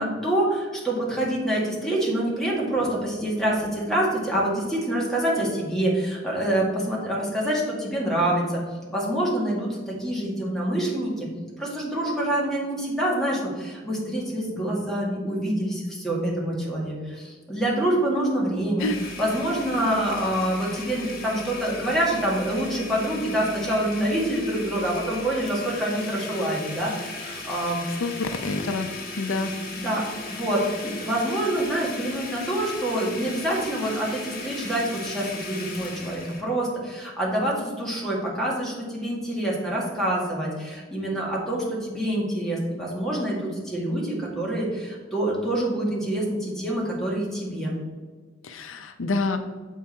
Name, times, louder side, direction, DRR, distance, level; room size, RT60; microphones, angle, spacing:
voice 1, 0.0-8.6 8.9-11.3 11.6-18.9 19.2-27.8 29.7-47.7, right 1 dB, ahead, -5 dB, 1.9 m, -26 dB
Domestic sounds home sounds, 18.8-36.4, left 3 dB, 50° left, 1.2 m, -37 dB
voice 2, 28.0-28.9 29.2-29.5 48.4-49.4, left 3 dB, 85° left, 8 dB, 0.6 m, -27 dB
7.2 x 4.7 x 4.4 m, 1.5 s
head